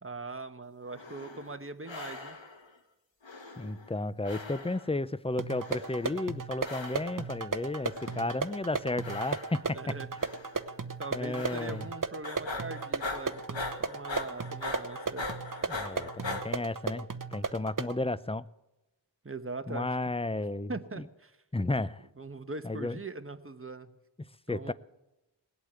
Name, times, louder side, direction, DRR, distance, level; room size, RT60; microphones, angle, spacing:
voice 1, 0.0-2.4 9.7-10.1 11.0-15.3 19.2-20.0 20.7-21.4 22.2-23.9 24.5-24.7, right 3 dB, 30° right, 9 dB, 1.2 m, -41 dB
sound 1, 0.9-1.6 1.9-2.7 3.2-4.0 4.2-5.0 5.6-6.2 6.6-7.3 7.9-8.5 9.0-9.8 10.2-10.7 11.3-12.0 12.2-16.4, left 3 dB, 85° left, 1.9 m, -41 dB
voice 2, 3.6-9.9 11.1-11.9 15.7-18.5 19.7-21.0 21.5-22.1 22.6-23.0 24.5-24.7, left 2 dB, 15° left, 17 dB, 0.5 m, -33 dB
sound 2, 5.4-18.0, right 4 dB, 45° right, 0.9 m, -36 dB
19.0 x 8.3 x 8.0 m, 0.97 s
wide cardioid pair, 40°, 44 cm